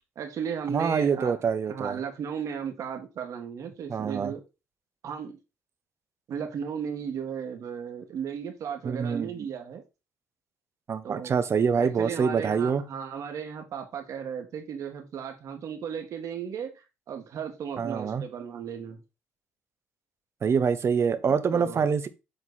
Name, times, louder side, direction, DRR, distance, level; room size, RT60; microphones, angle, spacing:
voice 1, 0.2-1.4 1.7-4.4 5.0-5.3 6.3-9.8 11.0-11.4 11.8-19.0 21.2-21.8, right 7 dB, 60° right, 1.9 m, -35 dB
voice 2, 0.7-2.0 3.9-4.3 8.8-9.3 10.9-12.8 17.8-18.2 20.4-22.1, right 6 dB, 45° right, 1.0 m, -25 dB
7.7 x 4.0 x 4.1 m
hypercardioid pair, 60°, 6 cm